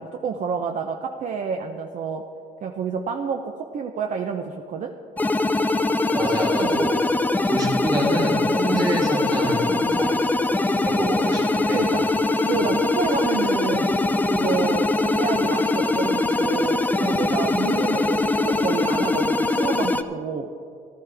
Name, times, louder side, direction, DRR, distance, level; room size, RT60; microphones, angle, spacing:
voice 1, 0.0-2.2 2.6-4.9 6.6-6.9 8.6-8.9 11.7-12.1 12.4-13.9 14.3-20.5, right 6 dB, 45° right, 4 dB, 0.6 m, -29 dB
sound 1, 5.2-20.0, left 2 dB, 10° left, 0.5 m, -22 dB
voice 2, 6.1-7.1 7.5-10.2 10.8-12.0 12.5-12.6, right 1 dB, 20° right, -1 dB, 2.1 m, -27 dB
14.5 x 12.5 x 3.4 m, 2.5 s
cardioid pair, 110°, 17 cm